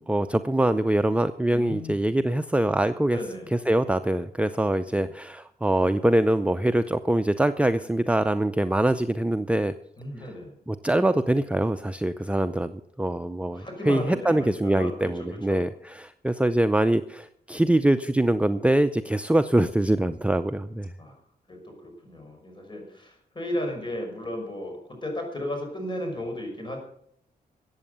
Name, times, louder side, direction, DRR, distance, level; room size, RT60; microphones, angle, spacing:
voice 1, 0.0-3.2 3.5-9.7 10.7-20.9, right 1 dB, 10° right, 10 dB, 0.5 m, -24 dB
voice 2, 1.5-2.0 3.1-3.5 4.7-5.1 10.0-10.6 13.5-15.6 21.0-21.1 21.5-26.8, left 1 dB, 30° left, 2 dB, 5.8 m, -35 dB
15.0 x 8.7 x 6.8 m, 0.69 s
cardioid pair, 80°, 16 cm